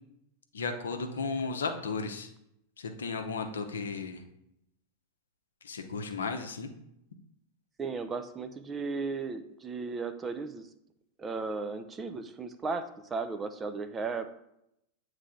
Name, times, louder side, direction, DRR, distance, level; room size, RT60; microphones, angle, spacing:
voice 1, 0.5-2.3 2.8-4.2 5.6-6.7, left 4 dB, 70° left, 5 dB, 0.7 m, -34 dB
voice 2, 7.8-10.7 11.2-12.8 13.1-14.4, right 4 dB, 20° right, 10 dB, 0.5 m, -35 dB
8.4 x 3.2 x 3.7 m, 0.80 s
figure-of-eight pair, 90°, 0 cm